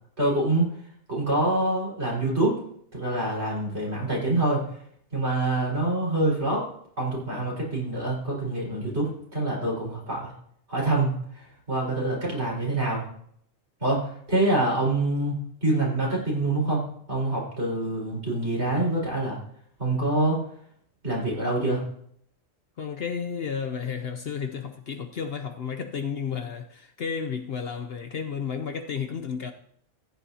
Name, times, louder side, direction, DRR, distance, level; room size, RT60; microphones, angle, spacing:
voice 1, 0.2-0.7 1.1-2.6 2.9-4.6 5.1-6.7 7.0-10.3 10.7-13.0 13.8-19.4 19.8-20.4 21.0-21.9, right 2 dB, 55° right, 5.1 m, -26 dB
voice 2, 22.8-29.5, left 6 dB, 55° left, 0.8 m, -32 dB
14.5 x 10.5 x 2.8 m
omnidirectional pair, 1.4 m